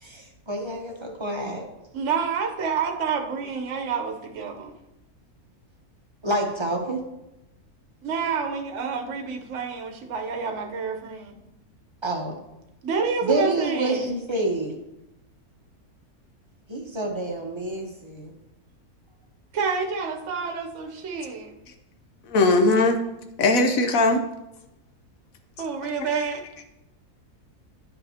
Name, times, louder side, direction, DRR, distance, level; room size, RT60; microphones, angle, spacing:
voice 1, 0.0-1.7 6.2-7.0 12.0-12.3 13.2-14.8 16.7-18.3, right 1 dB, 25° right, 2 dB, 0.7 m, -28 dB
voice 2, 1.9-4.7 8.0-11.3 12.8-14.1 19.5-21.5 25.6-26.4, right 5 dB, 55° right, 3 dB, 1.1 m, -28 dB
voice 3, 22.3-23.0 23.4-24.2 25.8-26.2, left 2 dB, 65° left, 6 dB, 1.1 m, -20 dB
10.5 x 5.7 x 2.8 m, 0.91 s
omnidirectional pair, 1.6 m